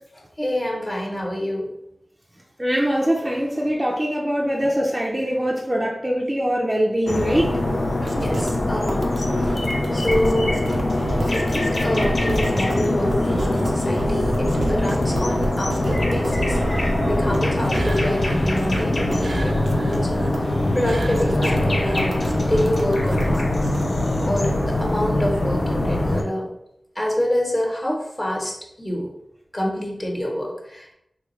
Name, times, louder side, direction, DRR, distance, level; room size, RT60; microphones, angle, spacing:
voice 1, 0.4-1.7 8.0-9.2 9.9-10.6 11.3-20.5 20.7-23.5 24.3-26.5 26.9-29.1 29.5-30.9, left 1 dB, 25° left, -1 dB, 1.1 m, -26 dB
voice 2, 2.6-7.5 11.7-12.1, equal, 20° right, -3 dB, 0.5 m, -23 dB
sound 1, 7.1-26.2, left 1 dB, 65° left, 0.5 m, -23 dB
sound 2, 8.1-23.8, right 1 dB, 80° right, 0.5 m, -30 dB
3.6 x 2.3 x 3.1 m, 0.78 s
cardioid pair, 40°, 0 cm